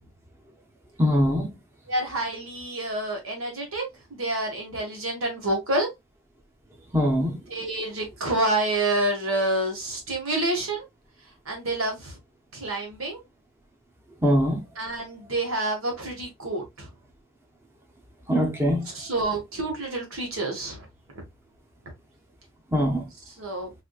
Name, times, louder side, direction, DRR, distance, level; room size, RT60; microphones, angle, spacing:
voice 1, 1.0-1.5 6.9-7.4 14.2-14.6 18.3-18.9 22.7-23.0, equal, 10° right, 0.7 m, -22 dB
voice 2, 1.9-3.8 4.1-5.9 7.5-10.8 11.4-12.2 12.5-13.2 14.8-16.9 18.9-20.8 23.3-23.7, right 2 dB, 90° right, 1.6 m, -28 dB
4.7 x 2.7 x 2.3 m
head